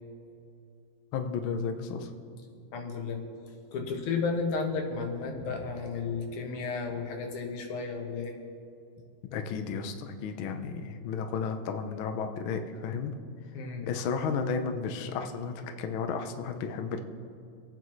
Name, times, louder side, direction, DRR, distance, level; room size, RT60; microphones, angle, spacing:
voice 1, 1.1-2.1 9.3-13.2 13.9-17.0, left 5 dB, 75° left, 6 dB, 1.2 m, -33 dB
voice 2, 2.7-3.2 3.7-8.3 13.5-13.9, left 4 dB, 90° left, 2 dB, 2.9 m, -33 dB
25.5 x 9.3 x 3.2 m, 2.5 s
omnidirectional pair, 3.4 m